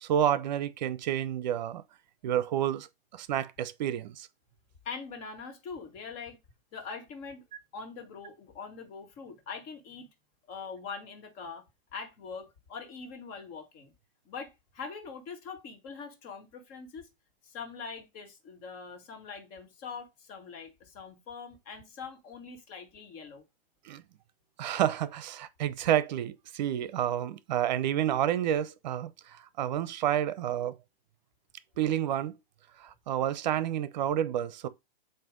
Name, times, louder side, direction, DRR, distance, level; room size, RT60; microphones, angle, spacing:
voice 1, 0.0-1.8 2.2-2.9 3.1-4.3 23.9-24.0 24.6-30.7 31.8-32.4 32.8-34.7, right 11 dB, 50° right, 0.8 m, -29 dB
voice 2, 4.8-6.4 6.7-7.4 7.7-10.1 10.5-11.6 11.9-13.9 14.2-17.1 17.4-23.4, left 5 dB, 30° left, 1.7 m, -43 dB
7.6 x 2.7 x 5.1 m
hypercardioid pair, 140°, 29 cm